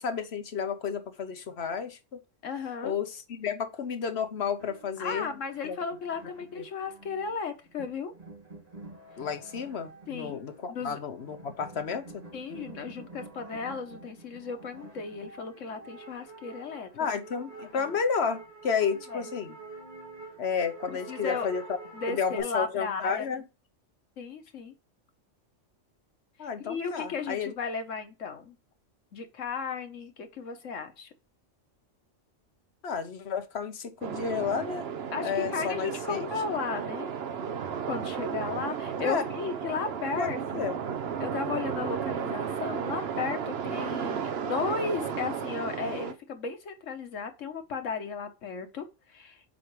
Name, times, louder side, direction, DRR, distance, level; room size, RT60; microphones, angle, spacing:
voice 1, 0.0-2.2 2.8-5.3 5.6-5.8 6.6-6.7 9.2-12.2 16.9-19.6 20.4-21.6 22.1-23.4 26.4-27.5 32.8-34.9 35.2-36.3 39.0-39.2 40.2-40.8, left 6 dB, 60° left, 1.1 m, -31 dB
voice 2, 2.4-2.9 5.0-8.1 10.1-10.4 10.7-11.0 12.3-17.2 17.7-17.9 19.1-19.3 20.9-21.5 21.9-23.3 24.2-24.7 26.4-28.6 29.1-31.1 35.1-37.1 37.8-40.7 41.2-49.4, left 5 dB, 90° left, 1.5 m, -35 dB
sound 1, 4.6-22.4, right 3 dB, 30° right, 2.9 m, -47 dB
sound 2, 34.0-46.1, right 7 dB, 60° right, 1.0 m, -34 dB
7.6 x 5.0 x 3.2 m
omnidirectional pair, 1.3 m